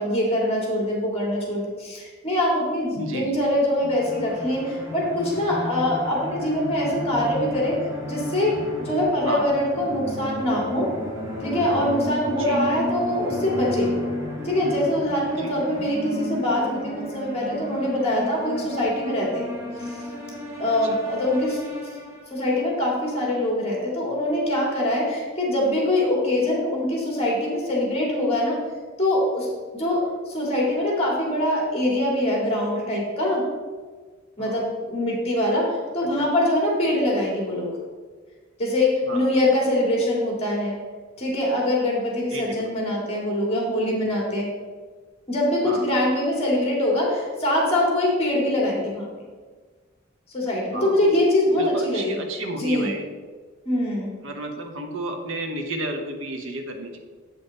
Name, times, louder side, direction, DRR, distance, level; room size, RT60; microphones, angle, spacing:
voice 1, 0.0-7.8 8.1-10.9 11.4-13.9 14.4-19.4 19.8-20.0 20.6-21.6 22.3-28.6 29.0-33.5 34.4-37.7 38.6-40.8 41.2-44.5 45.3-49.1 50.3-52.2 52.6-52.9 53.6-54.1, left 1 dB, 30° left, -2 dB, 2.2 m, -23 dB
voice 2, 3.0-3.4 9.2-9.5 12.4-12.6 15.4-15.5 20.8-21.0 34.4-34.7 36.2-36.3 39.0-39.3 42.3-42.7 45.6-45.9 50.7-51.1 51.5-53.1 54.2-57.0, right 1 dB, 70° right, 4 dB, 1.0 m, -32 dB
sound 1, 3.8-22.5, left 1 dB, 15° right, 1.9 m, -33 dB
8.3 x 5.4 x 4.0 m, 1.4 s
head